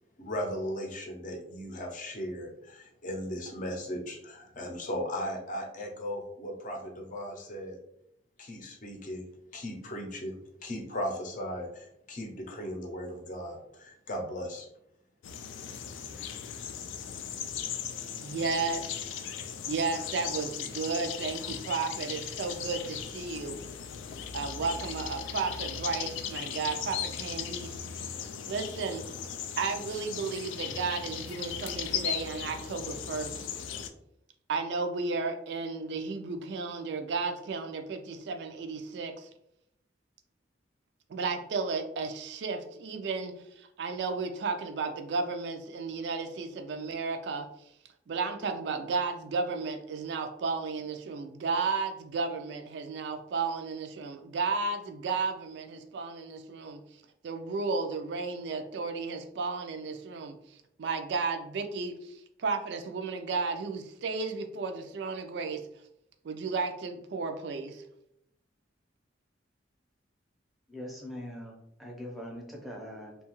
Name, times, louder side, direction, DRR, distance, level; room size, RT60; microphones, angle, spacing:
voice 1, 0.2-7.8 8.4-9.2 9.5-14.7, equal, 45° left, 1 dB, 0.6 m, -37 dB
sound 1, 15.2-33.9, left 8 dB, 90° left, 0.3 m, -37 dB
voice 2, 18.2-19.3 19.7-23.5 24.3-29.0 29.6-33.5 34.5-39.3 41.1-47.5 48.1-56.8 57.2-60.3 60.8-65.6 66.2-67.8, right 4 dB, 65° right, 6 dB, 0.3 m, -33 dB
voice 3, 70.7-73.2, equal, ahead, -2 dB, 0.6 m, -42 dB
2.8 x 2.3 x 2.9 m, 0.76 s
head